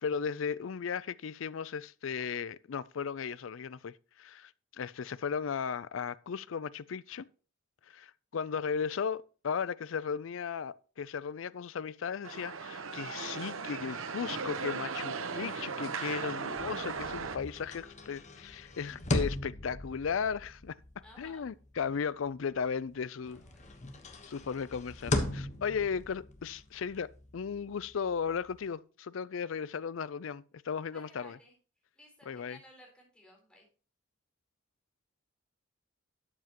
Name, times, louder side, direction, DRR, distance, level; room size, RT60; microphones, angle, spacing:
voice 1, 0.0-7.3 7.9-20.8 21.2-23.4 24.3-31.4 32.3-32.6, left 6 dB, 70° left, 0.4 m, -36 dB
sound 1, 12.2-17.4, right 5 dB, 90° right, 0.9 m, -37 dB
sound 2, 16.5-22.9 23.3-28.7, left 1 dB, 35° left, 1.2 m, -39 dB
voice 2, 21.0-21.4 23.2-23.9 30.9-31.6 31.9-33.7, left 1 dB, 5° left, 3.9 m, -57 dB
12.5 x 8.0 x 3.0 m
head